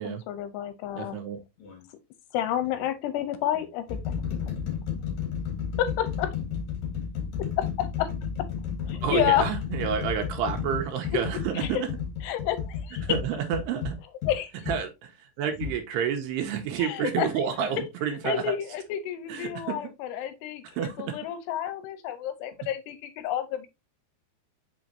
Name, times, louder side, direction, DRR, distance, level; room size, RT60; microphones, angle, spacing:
voice 1, 0.0-1.2 2.3-4.6 5.8-6.4 7.4-8.1 8.9-9.4 11.6-11.8 12.2-13.1 14.3-14.5 16.8-17.3 18.2-23.7, left 11 dB, 80° left, 2.7 m, -30 dB
voice 2, 1.0-1.4 9.0-12.0 13.0-14.0 14.7-18.5 19.3-19.9 20.6-21.2, right 7 dB, 75° right, 2.8 m, -30 dB
sound 1, 1.6-1.8 2.7-2.9 3.5-14.8 15.6-15.8, left 7 dB, 55° left, 2.2 m, -33 dB
6.2 x 5.6 x 2.7 m
omnidirectional pair, 5.1 m